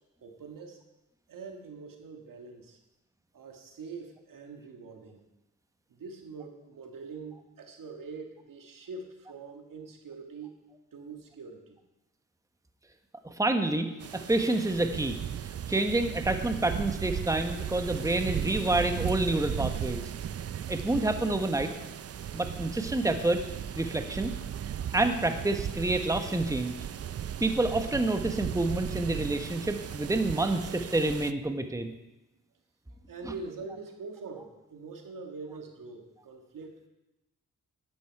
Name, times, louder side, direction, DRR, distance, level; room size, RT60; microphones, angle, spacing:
voice 1, 0.2-0.8 1.3-2.8 3.3-5.2 5.9-10.6 10.9-11.8 32.9-36.8, right 4 dB, 85° right, 3 dB, 1.7 m, -44 dB
voice 2, 13.2-13.9 14.1-15.2 15.4-20.0 20.7-21.7 22.3-23.4 23.7-24.3 24.9-26.8 27.4-31.9, right 2 dB, 10° right, 6 dB, 1.1 m, -28 dB
sound 1, 14.0-31.3, right 9 dB, 50° right, 0.5 m, -36 dB
11.5 x 9.3 x 4.6 m, 0.97 s
cardioid pair, 60°, 32 cm